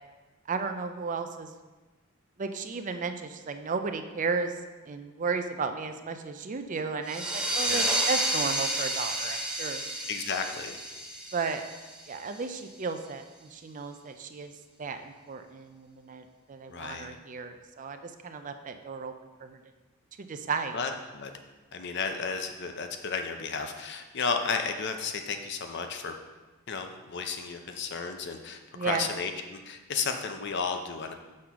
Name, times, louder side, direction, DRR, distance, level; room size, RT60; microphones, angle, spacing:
voice 1, 0.5-1.5 2.4-9.8 11.3-11.6 12.1-14.5 14.8-19.1 19.4-19.6 20.2-20.8 28.7-29.1, right 4 dB, 40° right, 8 dB, 0.4 m, -34 dB
sound 1, 7.0-12.4, right 1 dB, 5° right, 0.7 m, -31 dB
voice 2, 10.1-10.8 16.7-17.2 20.7-21.3 21.7-26.1 26.7-31.1, left 5 dB, 55° left, 6 dB, 0.6 m, -33 dB
6.4 x 3.9 x 5.7 m, 1.2 s
head